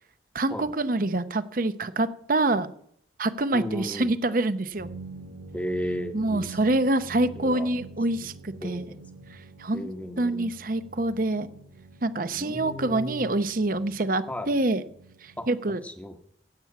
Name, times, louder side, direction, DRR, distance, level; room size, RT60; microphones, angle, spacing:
voice 1, 0.3-2.7 3.2-4.9 6.1-8.8 9.6-9.9 10.2-11.5 12.0-14.8 15.2-15.8, right 2 dB, 45° right, 12 dB, 0.7 m, -26 dB
voice 2, 3.5-4.1 5.5-6.6 7.3-7.7 8.2-8.3 8.6-9.0 9.7-10.5 12.3-13.3 14.3-14.5 15.4-15.5 15.8-16.2, equal, 10° left, 6 dB, 1.1 m, -35 dB
sound 1, 4.8-15.5, right 3 dB, 85° right, 2.1 m, -46 dB
15.5 x 8.7 x 5.9 m, 0.67 s
head